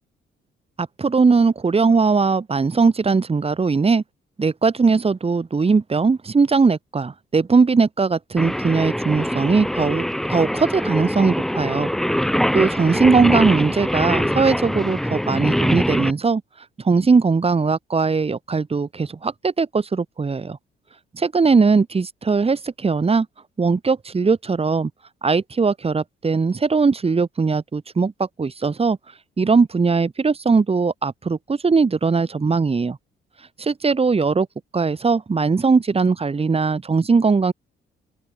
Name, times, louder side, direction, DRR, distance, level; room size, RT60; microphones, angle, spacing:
voice 1, 0.8-4.0 4.4-11.9 12.5-16.4 16.8-20.6 21.1-23.3 23.6-24.9 25.2-29.0 29.4-33.0 33.6-34.5 34.7-37.5, right 4 dB, 30° right, 3.4 m, -19 dB
Singing, 8.4-16.1, equal, ahead, 1.0 m, -23 dB
open air
cardioid pair, 90°, 20 cm